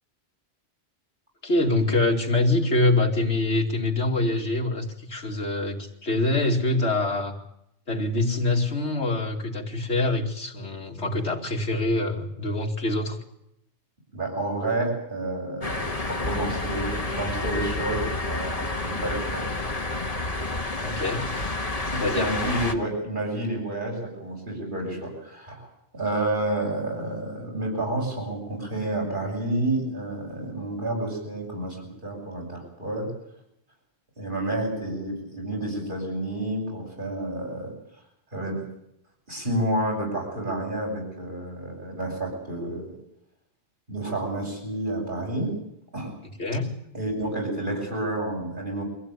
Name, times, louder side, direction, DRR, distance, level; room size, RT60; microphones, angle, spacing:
voice 1, 1.4-7.4 7.9-13.2 20.8-21.2 22.0-22.3 46.4-46.7, left 2 dB, 80° left, 0 dB, 2.9 m, -25 dB
voice 2, 14.1-19.4 21.8-25.7 25.9-31.8 32.0-33.1 34.2-37.7 38.3-38.6 39.3-42.9 43.9-45.5 45.9-46.2 46.9-48.8, right 1 dB, 50° right, 0 dB, 8.3 m, -30 dB
sound 1, 15.6-22.7, left 2 dB, 35° left, 1.6 m, -29 dB
24.5 x 15.5 x 9.7 m, 0.79 s
omnidirectional pair, 1.1 m